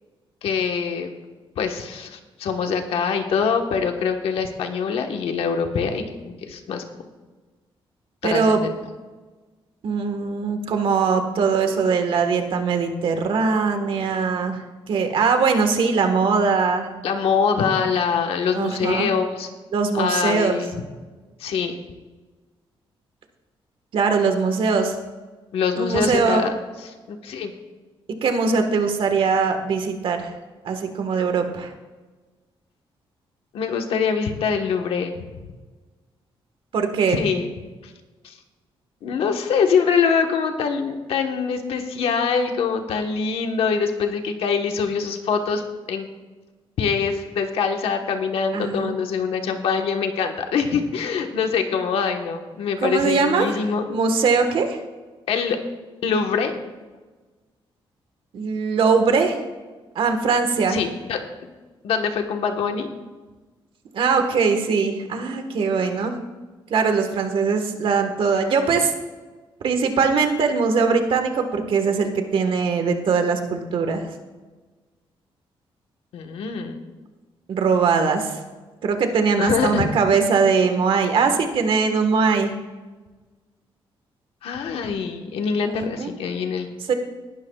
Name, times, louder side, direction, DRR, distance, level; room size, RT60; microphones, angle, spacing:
voice 1, 0.4-1.1 1.6-7.1 8.2-8.7 17.0-19.5 19.9-20.8 21.4-21.8 25.5-26.5 26.8-27.5 33.5-35.5 37.1-37.5 37.8-37.9 38.2-38.4 39.0-45.6 45.9-46.1 46.8-53.8 55.3-55.6 56.0-56.5 60.7-61.2 61.8-62.9 76.1-76.8 79.4-79.9 84.4-86.7, left 6 dB, 85° left, 4 dB, 1.3 m, -24 dB
voice 2, 8.2-8.6 9.8-14.6 14.9-16.9 18.5-19.1 19.7-20.5 23.9-25.0 25.8-26.4 28.2-30.3 30.6-31.7 36.7-37.2 48.5-48.9 52.8-53.5 53.9-54.8 58.3-59.4 59.9-60.8 63.9-66.1 66.7-68.9 69.6-74.1 77.5-78.4 78.8-82.5 85.6-86.1 86.9-87.0, right 5 dB, 65° right, 6 dB, 1.5 m, -21 dB
19.0 x 11.5 x 2.4 m, 1.3 s
cardioid pair, 130°, 10 cm